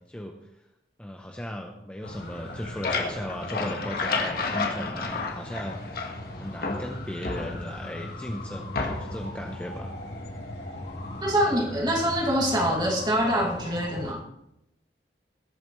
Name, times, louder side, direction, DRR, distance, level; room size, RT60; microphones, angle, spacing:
voice 1, 1.0-5.8 6.4-10.0, equal, 5° left, 2 dB, 0.8 m, -36 dB
sound 1, 2.0-14.1, left 1 dB, 80° left, 5.1 m, -39 dB
sound 2, 2.3-6.3 6.6-7.9 8.7-9.3, left 4 dB, 60° left, 1.6 m, -31 dB
voice 2, 11.2-14.2, equal, 25° right, -1 dB, 2.4 m, -25 dB
20.0 x 8.8 x 3.2 m, 0.84 s
head